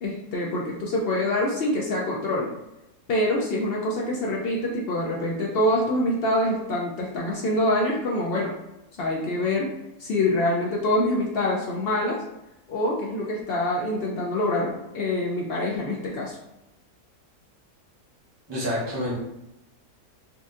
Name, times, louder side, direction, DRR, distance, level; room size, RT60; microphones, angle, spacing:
voice 1, 0.0-2.5 3.1-8.5 9.0-9.7 10.0-12.2 12.7-16.4, left 1 dB, 85° left, -3 dB, 0.5 m, -25 dB
voice 2, 18.5-19.1, left 1 dB, 20° right, -6 dB, 0.9 m, -28 dB
4.2 x 2.4 x 2.6 m, 0.91 s
omnidirectional pair, 1.6 m